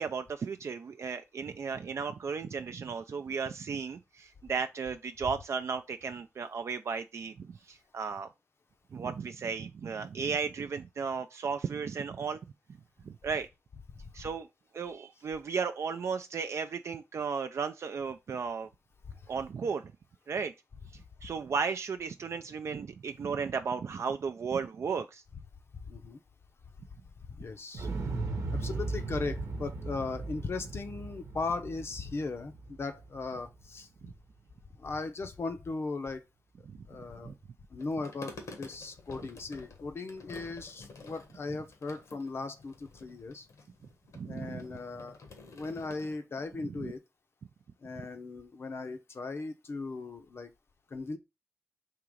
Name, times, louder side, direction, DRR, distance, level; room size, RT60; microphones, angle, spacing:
voice 1, 0.0-8.3 8.9-12.4 13.0-13.5 14.1-14.5 14.7-18.7 19.3-19.9 20.3-20.5 20.9-25.2 34.0-34.1 36.7-36.9 37.2-37.3 44.1-44.6 46.8-46.9, right 5 dB, 60° right, 0.4 m, -35 dB
voice 2, 25.8-26.2 27.3-27.9 28.5-33.9 34.7-36.2 36.9-37.3 37.7-43.5 44.2-45.2 45.5-47.0 47.8-50.5 50.9-51.2, left 3 dB, 50° left, 0.7 m, -38 dB
Explosion, 27.7-33.8 34.1-34.2, right 3 dB, 85° right, 0.9 m, -37 dB
sound 1, 37.8-46.2, left 3 dB, 75° left, 1.2 m, -50 dB
3.7 x 2.9 x 4.8 m
wide cardioid pair, 110°, 5 cm